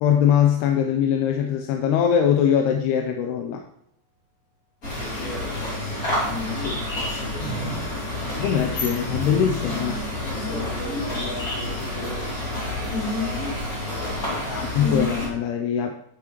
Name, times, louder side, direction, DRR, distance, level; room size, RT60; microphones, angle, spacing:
voice 1, 0.0-3.6 6.6-6.8 8.4-10.0 14.5-16.0, left 8 dB, 80° left, 3 dB, 2.6 m, -22 dB
sound 1, 0.9-1.4 11.1-14.6, right 2 dB, 75° right, 2.5 m, -45 dB
sound 2, 4.8-15.3, left 1 dB, 30° left, 2.0 m, -28 dB
voice 2, 5.0-5.6 7.2-7.8 9.6-9.8 10.2-12.9 13.9-14.3, left 1 dB, 65° left, -4 dB, 4.1 m, -38 dB
sound 3, 7.4-7.8 8.2-15.1, right 3 dB, 40° right, 2.3 m, -39 dB
9.6 x 8.5 x 3.1 m, 0.76 s
omnidirectional pair, 4.9 m